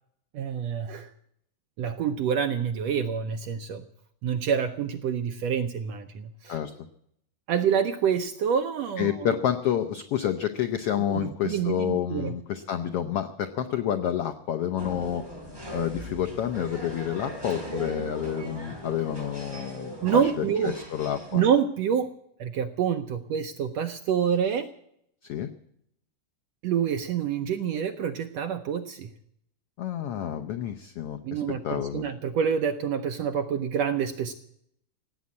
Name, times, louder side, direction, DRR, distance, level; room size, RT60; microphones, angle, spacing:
voice 1, 0.3-1.1 1.8-3.8 4.2-6.6 7.5-9.4 11.1-12.3 20.0-20.7 21.3-22.1 22.4-24.7 26.6-29.1 31.2-34.3, right 8 dB, 75° right, 7 dB, 1.5 m, -27 dB
voice 2, 9.0-15.2 15.7-20.2 20.6-21.4 25.2-25.5 29.8-32.0, left 10 dB, 85° left, 8 dB, 1.3 m, -29 dB
sound 1, 14.8-21.4, right 1 dB, 5° right, 4.5 m, -39 dB
17.0 x 8.6 x 9.4 m, 0.72 s
omnidirectional pair, 3.8 m